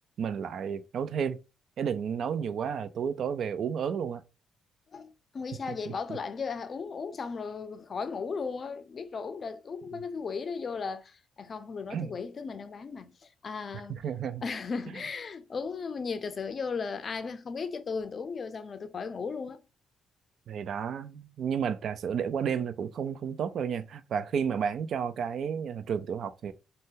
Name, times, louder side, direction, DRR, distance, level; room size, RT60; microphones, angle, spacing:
voice 1, 0.2-1.4 1.8-4.2 11.9-12.1 13.9-14.4 20.5-26.5, right 7 dB, 65° right, 0.3 m, -31 dB
voice 2, 4.9-14.0 14.4-19.6, left 5 dB, 45° left, 0.4 m, -36 dB
2.6 x 2.1 x 3.5 m
cardioid pair, 90°, 0 cm